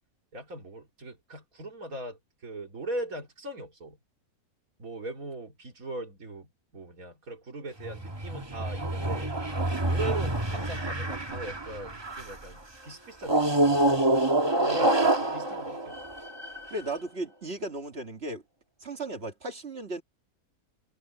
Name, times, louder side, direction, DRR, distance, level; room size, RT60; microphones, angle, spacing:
voice 1, 0.3-4.0 4.8-9.3 9.9-14.1 14.6-16.0, right 2 dB, 65° right, 3.7 m, -39 dB
sound 1, 7.8-12.4 13.2-16.8, right 1 dB, 20° right, 1.4 m, -27 dB
voice 2, 16.7-18.4 18.8-20.0, right 2 dB, 40° right, 2.3 m, -35 dB
omnidirectional pair, 1.6 m